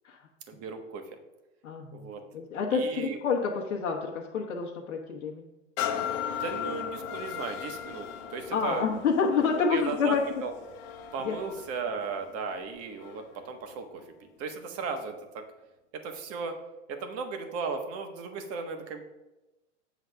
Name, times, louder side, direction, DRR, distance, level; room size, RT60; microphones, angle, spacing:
voice 1, 0.5-1.2 1.9-2.2 2.7-3.2 6.3-8.9 9.5-10.5 11.1-15.4 15.9-16.6 16.9-19.0, right 5 dB, 40° right, 5 dB, 1.5 m, -36 dB
voice 2, 1.6-5.5 8.5-10.2 11.2-11.3, left 5 dB, 85° left, -2 dB, 1.4 m, -28 dB
sound 1, 5.8-13.4 13.9-14.0, left 9 dB, 45° left, 1.2 m, -37 dB
8.2 x 4.0 x 6.7 m, 1.0 s
hypercardioid pair, 125°, 37 cm